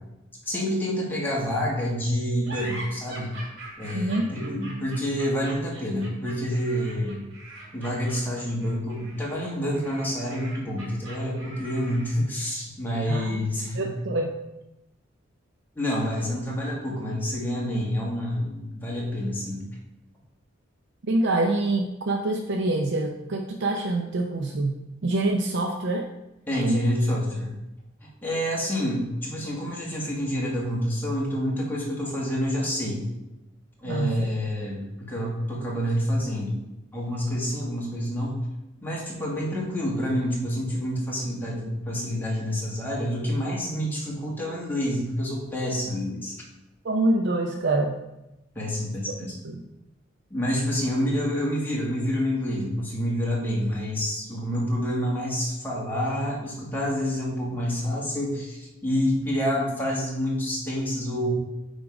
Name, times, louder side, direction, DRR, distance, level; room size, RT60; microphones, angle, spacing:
voice 1, 0.5-3.3 3.8-7.3 7.7-13.9 15.8-19.6 26.5-27.5 28.0-33.0 33.8-36.5 36.9-38.4 38.8-46.4 48.6-49.4 50.3-61.3, equal, 10° left, -5 dB, 1.8 m, -28 dB
sound 1, 2.4-12.3, right 1 dB, 90° right, 2.6 m, -42 dB
voice 2, 3.9-4.3 13.1-13.4 13.8-14.4 21.1-26.1 26.6-26.8 33.8-34.1 46.8-47.9 49.4-49.7, right 2 dB, 60° right, 3 dB, 0.5 m, -25 dB
8.6 x 3.7 x 4.8 m, 0.96 s
head